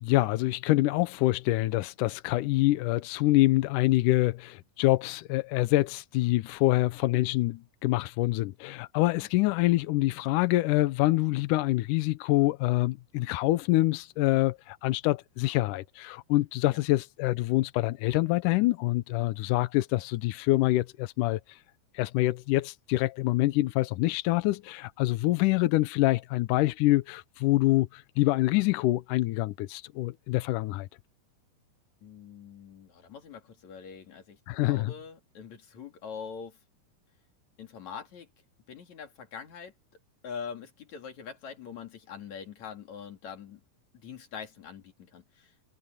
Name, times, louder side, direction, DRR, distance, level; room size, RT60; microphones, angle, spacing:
voice 1, 0.0-21.6 21.9-30.9 34.5-34.9, left 18 dB, 80° left, 1.8 m, -26 dB
voice 2, 9.1-9.5 16.7-16.8 32.0-36.6 37.6-38.3 38.7-39.7 40.2-43.6 43.9-45.5, left 6 dB, 50° left, 3.8 m, -43 dB
omnidirectional pair, 4.4 m